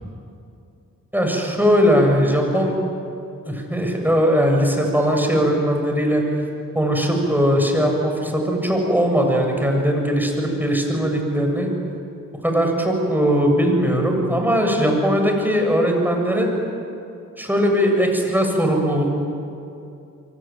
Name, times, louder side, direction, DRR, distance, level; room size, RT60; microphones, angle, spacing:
voice 1, 1.1-2.8 3.4-6.2 6.7-11.7 12.4-16.5 17.4-19.1, equal, 5° right, 2 dB, 7.6 m, -19 dB
25.0 x 24.5 x 9.3 m, 2.6 s
cardioid pair, 60°, 33 cm